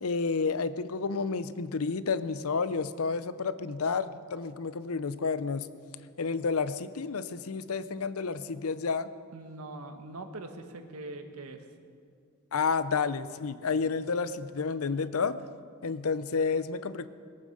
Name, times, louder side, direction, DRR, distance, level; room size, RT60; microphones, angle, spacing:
voice 1, 0.0-5.7 6.2-9.1 12.5-15.4 15.8-17.1, left 5 dB, 75° left, 14 dB, 0.6 m, -30 dB
voice 2, 9.3-11.7, right 2 dB, 85° right, 6 dB, 1.3 m, -42 dB
21.0 x 8.9 x 6.5 m, 2.2 s
head